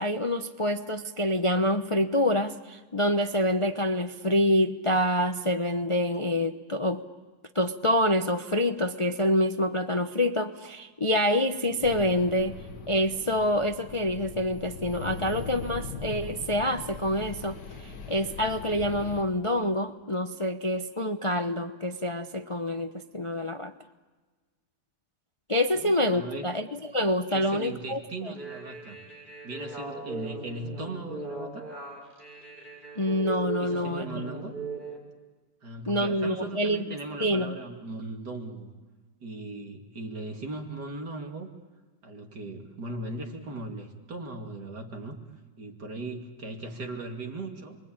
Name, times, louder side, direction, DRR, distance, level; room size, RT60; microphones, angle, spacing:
voice 1, 0.0-7.0 7.5-12.6 12.9-23.7 25.5-28.0 33.0-34.1 35.9-37.6, left 1 dB, 30° left, 6 dB, 0.6 m, -27 dB
sound 1, 11.8-19.2, left 5 dB, 75° left, 2.2 m, -40 dB
voice 2, 25.8-26.5 27.3-29.0 29.4-31.7 33.6-34.6 35.6-38.7 39.2-41.5 42.0-45.2 45.6-47.8, right 2 dB, 65° right, 3 dB, 3.0 m, -38 dB
sound 2, 28.3-35.0, right 3 dB, 25° right, 6.9 m, -39 dB
29.0 x 22.5 x 8.8 m, 1.3 s
omnidirectional pair, 1.9 m